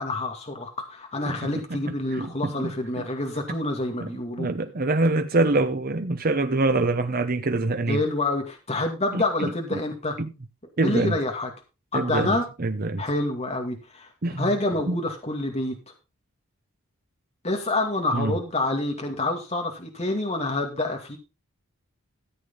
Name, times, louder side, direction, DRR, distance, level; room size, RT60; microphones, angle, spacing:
voice 1, 0.0-4.5 7.9-10.2 10.8-11.5 11.9-12.4 13.0-14.1 14.4-15.8 17.4-21.2, left 2 dB, 30° left, 2.3 m, -27 dB
voice 2, 1.3-1.8 2.1-2.7 4.0-4.1 4.4-8.0 9.1-9.8 10.2-10.3 10.8-11.2 11.9-13.0 14.2-14.5 14.9-15.0 18.1-18.4, right 2 dB, 45° right, 0.8 m, -25 dB
14.0 x 8.3 x 3.8 m
head